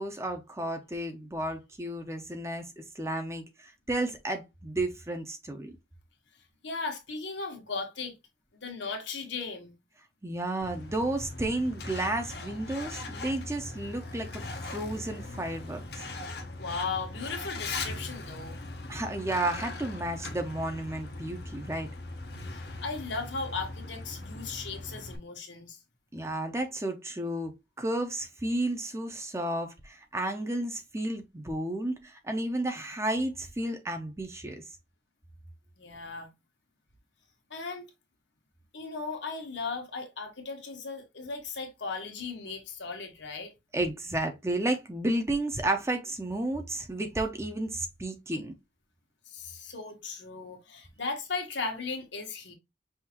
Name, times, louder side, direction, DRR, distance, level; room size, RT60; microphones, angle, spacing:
voice 1, 0.0-5.7 10.2-14.4 14.7-16.0 18.9-21.9 26.1-34.6 43.7-48.5, right 1 dB, 15° right, 0.6 m, -32 dB
voice 2, 6.6-8.2 8.5-9.8 16.6-18.6 22.5-25.8 35.8-36.3 37.5-37.9 38.7-43.5 49.3-52.5, left 4 dB, 85° left, 1.3 m, -37 dB
Truck, 10.6-25.2, left 3 dB, 60° left, 0.7 m, -40 dB
5.6 x 2.6 x 2.9 m
head